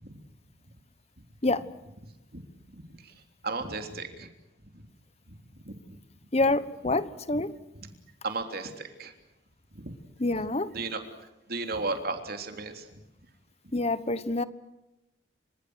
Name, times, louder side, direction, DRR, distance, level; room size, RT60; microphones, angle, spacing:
voice 1, 3.4-4.3 5.7-5.8 7.3-7.4 8.2-9.1 9.8-10.0 10.7-11.0 11.5-12.8, right 3 dB, 55° right, 6 dB, 3.4 m, -34 dB
voice 2, 6.3-7.5 10.2-10.7 13.7-14.4, left 2 dB, 35° left, 15 dB, 1.2 m, -26 dB
29.5 x 26.5 x 6.5 m, 0.92 s
head